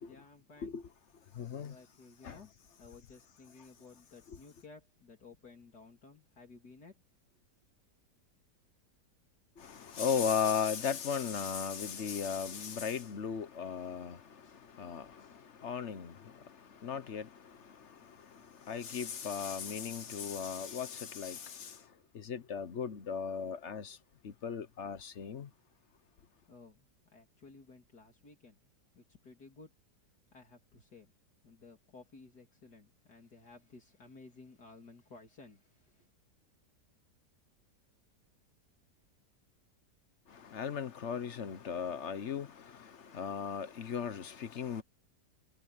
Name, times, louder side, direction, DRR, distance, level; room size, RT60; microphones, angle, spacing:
voice 1, 0.1-0.8 1.6-2.5 2.8-7.0 26.5-28.7 29.0-29.7 30.3-31.1 31.4-36.1, left 3 dB, 65° left, 3.7 m, -56 dB
voice 2, 1.4-1.7 2.2-2.4 9.6-14.2 14.8-15.1 15.6-16.1 16.8-17.3 18.7-21.7 22.1-24.0 24.2-25.5 40.5-42.5 42.8-44.8, left 7 dB, 50° left, 1.1 m, -36 dB
omnidirectional pair, 1.8 m